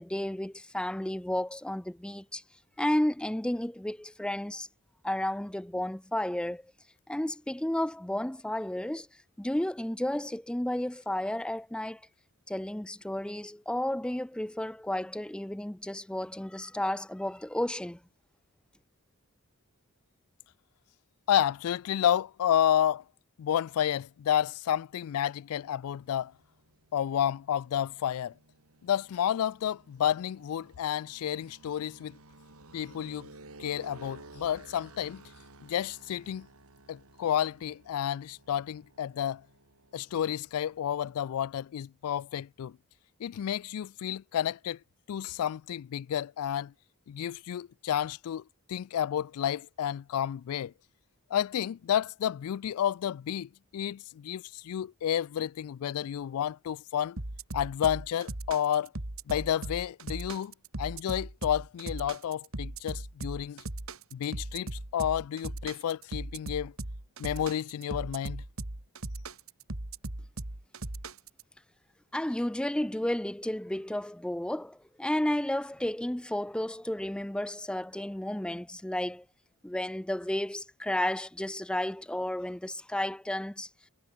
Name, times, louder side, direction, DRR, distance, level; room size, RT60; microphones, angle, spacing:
voice 1, 0.0-2.4 2.8-4.7 5.0-6.7 7.1-9.1 9.4-12.0 12.5-18.0 72.1-79.2 79.6-83.7, left 1 dB, 5° left, 0.4 m, -32 dB
voice 2, 21.3-23.0 23.4-26.3 26.9-28.3 28.8-32.2 32.7-33.3 33.6-35.2 35.6-36.5 36.9-39.4 39.9-42.7 43.2-44.8 45.1-46.7 47.1-48.4 48.7-50.7 51.3-57.2 57.5-58.9 59.3-60.5 60.8-63.6 64.1-66.7 67.2-68.4, left 10 dB, 85° left, 0.3 m, -30 dB
sound 1, 25.6-41.2, right 2 dB, 85° right, 4.8 m, -55 dB
sound 2, 57.2-71.4, right 2 dB, 70° right, 2.6 m, -38 dB
head